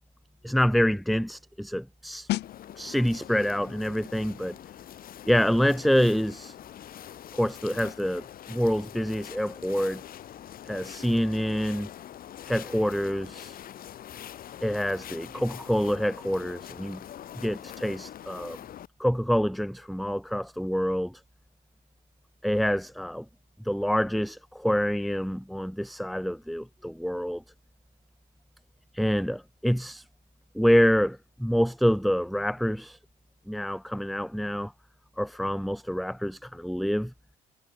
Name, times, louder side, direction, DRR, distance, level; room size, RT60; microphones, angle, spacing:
voice 1, 0.4-2.3 2.8-4.6 5.3-6.6 7.3-10.0 10.6-11.9 12.5-13.6 14.6-17.0 17.4-18.6 19.0-21.2 22.4-23.3 23.6-27.4 28.9-30.0 30.5-33.0 33.5-34.7 35.2-37.1, equal, ahead, 0.6 m, -26 dB
sound 1, 2.3-12.8 13.1-13.3, left 17 dB, 80° left, 1.4 m, -42 dB
sound 2, 2.4-18.9, left 11 dB, 60° left, 6.1 m, -44 dB
cardioid pair, 110°, 17 cm